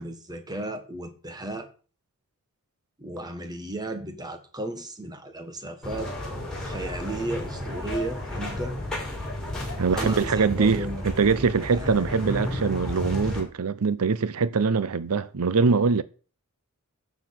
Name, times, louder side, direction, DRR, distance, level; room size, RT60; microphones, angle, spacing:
voice 1, 0.0-1.7 3.0-6.1 6.6-8.8 9.9-11.0 11.7-12.1, right 2 dB, 20° right, 1.6 m, -34 dB
sound 1, 5.8-13.4, left 1 dB, 5° left, 6.2 m, -32 dB
voice 2, 9.8-16.0, right 5 dB, 80° right, 0.6 m, -23 dB
12.0 x 7.2 x 6.0 m
head